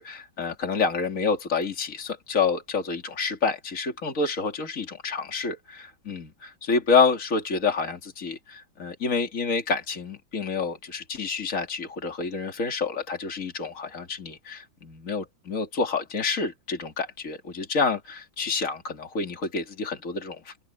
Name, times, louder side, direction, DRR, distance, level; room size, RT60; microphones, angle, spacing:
voice 1, 0.0-20.5, left 4 dB, 45° left, 3.0 m, -28 dB
omnidirectional pair, 2.0 m